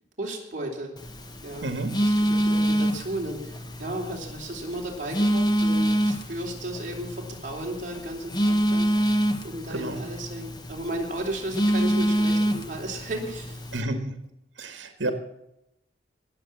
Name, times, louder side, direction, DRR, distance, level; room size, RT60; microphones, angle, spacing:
voice 1, 0.2-0.9 1.4-1.7 2.0-8.9 9.4-13.6 14.8-14.9, right 1 dB, 45° right, -1 dB, 3.7 m, -34 dB
Telephone, 1.0-13.8, right 1 dB, 20° left, 1.1 m, -26 dB
voice 2, 1.6-2.0 9.7-10.0 13.7-14.1 14.6-15.1, right 2 dB, 75° right, 7 dB, 1.8 m, -30 dB
20.0 x 7.2 x 7.3 m, 0.83 s
head